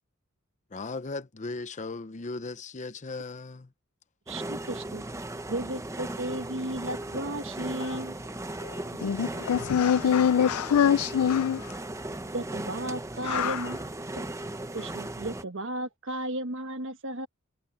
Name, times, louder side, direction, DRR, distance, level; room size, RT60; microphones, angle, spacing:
voice 1, 0.7-3.7, left 3 dB, 35° left, 0.7 m, -37 dB
sound 1, 4.3-15.5, right 1 dB, 15° right, 0.9 m, -37 dB
voice 2, 4.3-5.0 5.5-8.2 12.3-13.8 14.1-14.3 14.7-17.3, right 1 dB, 60° right, 1.4 m, -34 dB
voice 3, 8.6-11.8 13.2-13.7, left 8 dB, 85° left, 0.4 m, -25 dB
head